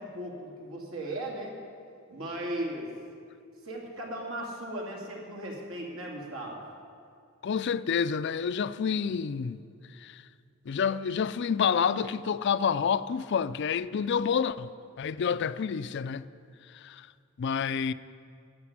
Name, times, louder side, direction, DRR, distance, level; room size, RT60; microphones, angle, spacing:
voice 1, 0.0-1.5 2.1-2.9 3.6-6.6 8.8-9.0, right 1 dB, 75° right, 2.6 m, -37 dB
voice 2, 7.4-9.6 10.0-10.2 10.7-14.7 15.0-16.2 16.7-17.1 17.4-17.9, left 6 dB, 55° left, 0.4 m, -28 dB
12.0 x 8.0 x 9.6 m
head